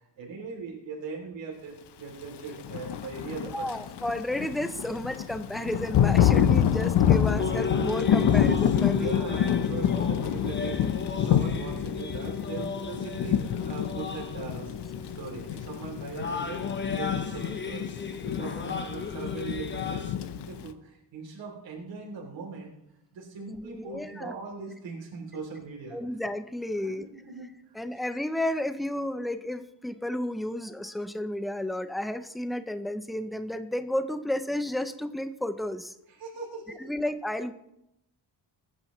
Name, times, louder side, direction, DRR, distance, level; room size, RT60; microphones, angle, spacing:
voice 1, 0.0-3.9 7.2-7.5 9.0-13.4 13.6-16.6 16.9-22.7 23.1-26.0 26.8-27.8 36.1-36.9, right 4 dB, 85° right, -1 dB, 2.9 m, -40 dB
Thunder / Rain, 2.6-20.7, left 9 dB, 65° left, 0.8 m, -27 dB
voice 2, 3.5-9.2 23.5-24.3 25.9-27.1 27.7-35.9 36.8-37.5, left 1 dB, ahead, 10 dB, 0.3 m, -32 dB
sound 1, 7.4-20.1, left 4 dB, 25° left, 0.8 m, -36 dB
20.5 x 9.9 x 3.0 m, 0.83 s
wide cardioid pair, 180°, 43 cm